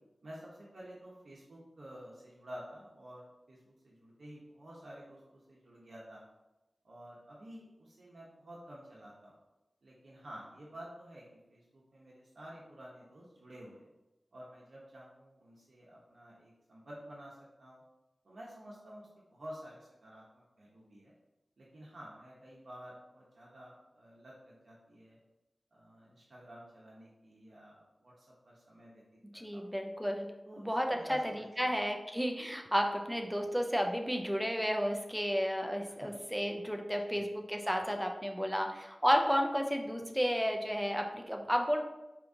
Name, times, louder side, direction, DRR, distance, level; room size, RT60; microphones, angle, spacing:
voice 1, 0.2-6.2 6.8-9.3 9.8-13.9 14.3-17.8 18.2-21.1 21.6-25.2 25.7-29.0 29.3-29.7 30.4-31.7 36.0-36.2 37.1-37.3, equal, 75° right, -5 dB, 0.8 m, -51 dB
voice 2, 29.3-30.3 30.6-31.2 31.6-41.8, equal, ahead, 3 dB, 0.5 m, -32 dB
4.6 x 2.9 x 2.6 m, 1.0 s
wide cardioid pair, 55°, 0 cm